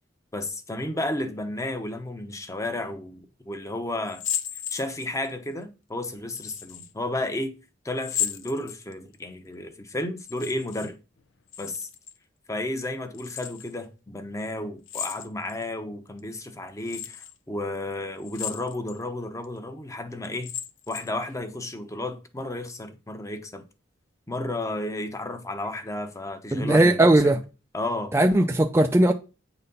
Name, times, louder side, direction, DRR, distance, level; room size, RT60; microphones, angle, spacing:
voice 1, 0.3-4.2 4.5-7.6 7.8-11.0 11.6-11.9 12.5-20.5 20.9-23.6 24.3-27.4 27.7-28.2, left 1 dB, 15° left, 0.9 m, -32 dB
sound 1, 4.1-5.3 6.3-6.9 8.0-9.2 10.2-10.9 11.2-12.2 13.1-13.7 14.9-15.6 16.2-16.3 16.9-17.3 18.2-19.0 19.4-19.5 20.2-21.2, left 9 dB, 80° left, 0.8 m, -34 dB
voice 2, 26.5-27.4 28.1-29.1, right 1 dB, 15° right, 0.4 m, -18 dB
8.8 x 4.1 x 5.4 m
head